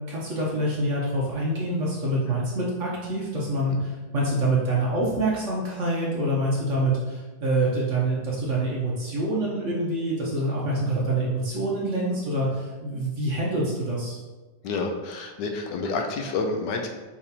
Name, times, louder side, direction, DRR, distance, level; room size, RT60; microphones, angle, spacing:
voice 1, 0.1-14.2, right 1 dB, 55° right, -5 dB, 1.0 m, -26 dB
voice 2, 14.6-16.9, left 3 dB, 80° left, 3 dB, 1.2 m, -29 dB
4.9 x 3.5 x 2.8 m, 1.2 s
omnidirectional pair, 1.9 m